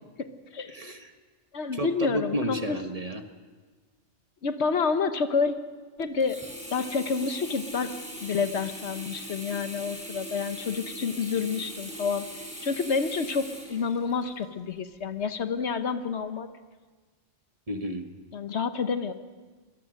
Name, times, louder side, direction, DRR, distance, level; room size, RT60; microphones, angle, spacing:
voice 1, 0.7-1.1 1.7-3.2 17.7-18.1, equal, 30° right, 6 dB, 1.5 m, -31 dB
voice 2, 1.5-2.8 4.4-5.6 6.0-6.4 6.7-7.9 8.2-12.3 12.6-16.5 18.3-19.1, left 5 dB, 70° left, 9 dB, 1.3 m, -29 dB
Sink (filling or washing), 6.2-14.4 15.0-15.1, equal, 5° right, 5.8 m, -41 dB
25.5 x 18.5 x 6.5 m, 1.4 s
omnidirectional pair, 1.2 m